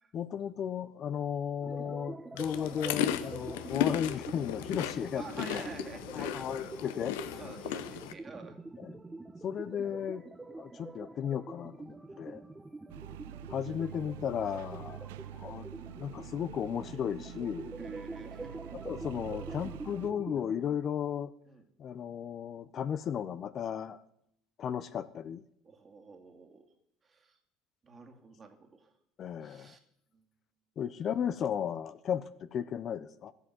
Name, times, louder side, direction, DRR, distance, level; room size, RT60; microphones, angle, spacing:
voice 1, 0.1-5.7 6.1-7.4 8.8-9.0 9.4-10.2 10.6-12.4 13.5-17.7 18.8-21.3 21.8-24.0 24.6-25.4 29.2-29.8 30.8-33.3, left 8 dB, 50° left, 14 dB, 0.6 m, -35 dB
sound 1, 1.6-20.6, right 2 dB, 15° right, 1.0 m, -45 dB
sound 2, 2.4-8.1, left 12 dB, 85° left, 0.7 m, -36 dB
voice 2, 5.1-6.5 7.4-8.6 12.1-12.5 14.8-15.0 17.8-18.6 21.5-21.7 25.6-26.7 27.0-27.4 27.8-28.9 29.4-29.8 30.1-30.3, right 4 dB, 30° right, 4 dB, 2.2 m, -49 dB
sound 3, 12.9-20.1, right 11 dB, 90° right, 0.5 m, -46 dB
13.0 x 8.1 x 7.7 m, 0.74 s
supercardioid pair, 90°, 0 cm